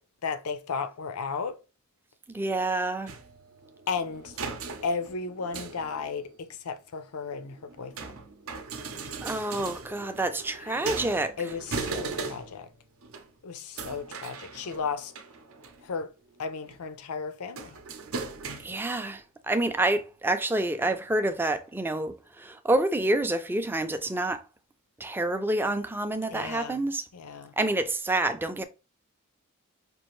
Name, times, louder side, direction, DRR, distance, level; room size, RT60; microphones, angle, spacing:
voice 1, 0.2-1.6 3.9-4.3 4.8-6.3 6.6-8.1 11.4-12.7 13.4-15.1 15.8-16.1 16.4-17.8 26.3-26.8 27.1-27.5, left 5 dB, 90° left, 0.5 m, -34 dB
voice 2, 2.3-3.1 9.2-11.4 18.6-24.4 25.0-27.1 27.6-28.6, right 2 dB, 10° right, 0.4 m, -28 dB
sound 1, 3.1-6.4 7.1-12.7 13.0-13.3 13.8-16.0 16.4-16.8 17.5-19.0 20.0-20.1 20.8-20.9 21.2-21.4, right 4 dB, 70° right, 0.6 m, -39 dB
5.3 x 2.5 x 3.1 m
head